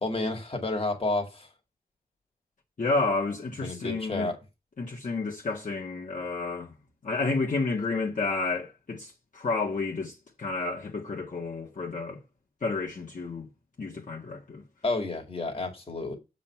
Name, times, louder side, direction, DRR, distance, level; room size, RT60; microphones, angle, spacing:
voice 1, 0.0-1.5 3.6-4.4 14.8-16.1, left 2 dB, 40° left, 2.2 m, -30 dB
voice 2, 2.8-4.3 4.8-6.8 7.0-12.2 12.6-13.5 13.8-14.6, left 3 dB, 55° left, 1.7 m, -30 dB
7.4 x 4.1 x 5.8 m
wide cardioid pair, 95°, 16 cm